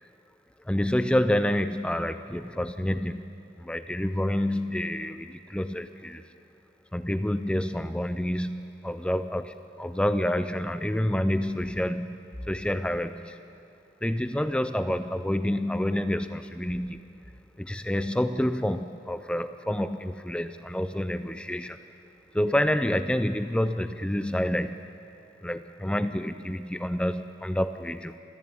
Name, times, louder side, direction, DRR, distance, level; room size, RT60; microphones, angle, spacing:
voice 1, 0.7-3.2 3.6-6.2 6.9-13.4 14.0-17.0 17.6-21.8 22.3-24.9 25.4-28.2, left 1 dB, 5° left, 10 dB, 0.4 m, -28 dB
26.0 x 14.5 x 8.8 m, 2.7 s
head